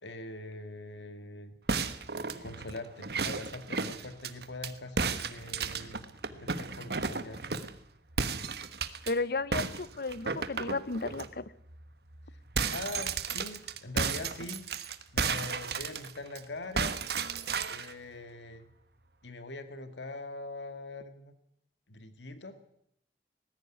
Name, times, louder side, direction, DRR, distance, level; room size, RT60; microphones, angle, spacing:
voice 1, 0.0-1.5 2.4-6.0 6.4-7.4 12.6-14.6 15.1-17.0 17.7-18.7 19.2-21.3 21.9-22.6, left 2 dB, 85° left, 9 dB, 1.9 m, -42 dB
sound 1, 1.7-4.7 5.0-7.8 8.2-9.1 9.5-11.3 11.7-11.8 12.1-16.4 16.8-17.9, right 5 dB, 65° right, 1.4 m, -33 dB
voice 2, 9.1-11.5, left 3 dB, 55° left, 18 dB, 0.8 m, -33 dB
19.0 x 15.0 x 9.9 m, 0.73 s
head